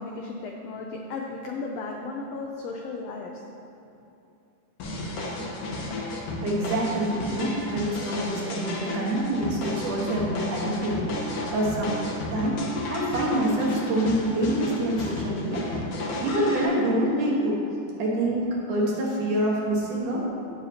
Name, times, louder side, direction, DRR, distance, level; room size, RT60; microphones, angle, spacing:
voice 1, 0.0-3.3, left 3 dB, 85° left, 0 dB, 1.4 m, -35 dB
sound 1, 4.8-16.6, left 2 dB, 60° left, 1.7 m, -33 dB
voice 2, 6.4-11.1 11.5-12.0 12.3-12.6 12.9-15.6 16.2-17.6 18.0-20.2, right 1 dB, 70° right, -4 dB, 3.0 m, -26 dB
16.5 x 7.1 x 2.9 m, 2.8 s
omnidirectional pair, 3.7 m